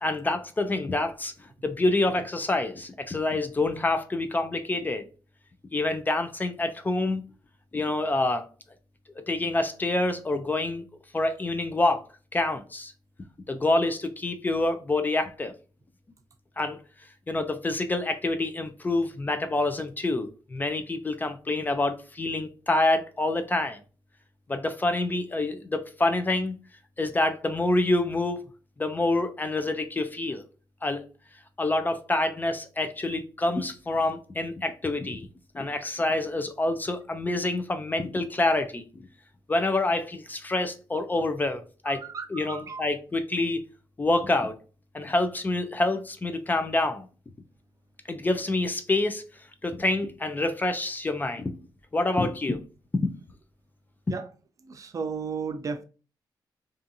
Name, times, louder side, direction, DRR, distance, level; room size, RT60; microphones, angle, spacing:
voice 1, 0.0-1.3 1.6-5.1 5.7-7.2 7.7-8.5 9.3-10.8 11.1-12.0 12.3-12.9 13.5-15.5 16.6-16.8 17.3-23.8 24.5-26.6 27.0-28.5 28.8-30.4 30.8-31.1 31.6-35.3 35.5-39.0 39.5-42.0 42.3-43.6 44.0-44.6 44.9-47.1 48.1-49.2 49.6-51.5 51.9-52.6 52.9-53.1, left 2 dB, 25° left, 0.3 m, -27 dB
voice 2, 41.9-42.9 54.1-54.3 54.6-55.8, right 5 dB, 45° right, 0.4 m, -34 dB
2.5 x 2.4 x 2.6 m
cardioid pair, 105°, 8 cm